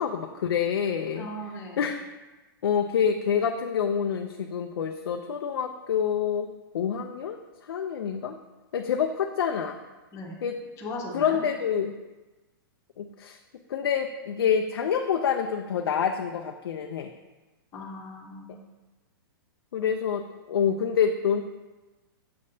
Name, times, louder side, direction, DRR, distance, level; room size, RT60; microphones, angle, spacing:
voice 1, 0.0-1.3 1.8-2.0 2.6-6.5 6.7-8.4 8.7-9.8 10.4-10.6 11.1-11.9 13.0-13.4 13.7-17.1 19.7-21.4, left 7 dB, 85° left, 5 dB, 0.4 m, -27 dB
voice 2, 1.2-1.9 10.1-10.4 10.8-11.4 17.7-18.6, left 1 dB, 25° left, -3 dB, 1.0 m, -38 dB
6.5 x 5.4 x 2.7 m, 1.2 s
hypercardioid pair, 135°, 12 cm